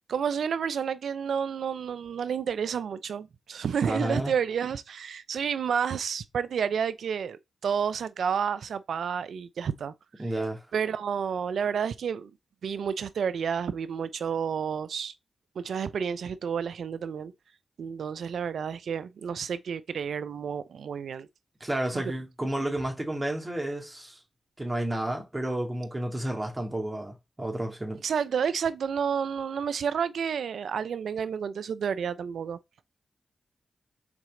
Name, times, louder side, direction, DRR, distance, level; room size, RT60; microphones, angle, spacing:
voice 1, 0.1-9.9 10.7-12.3 12.6-15.1 15.6-17.3 17.8-21.3 21.9-22.0 28.0-32.6, right 7 dB, 75° right, 0.5 m, -30 dB
voice 2, 3.9-4.3 10.2-10.6 21.6-24.2 24.6-28.0, right 1 dB, 25° right, 2.6 m, -31 dB
6.1 x 4.3 x 3.8 m
supercardioid pair, 45°, 0 cm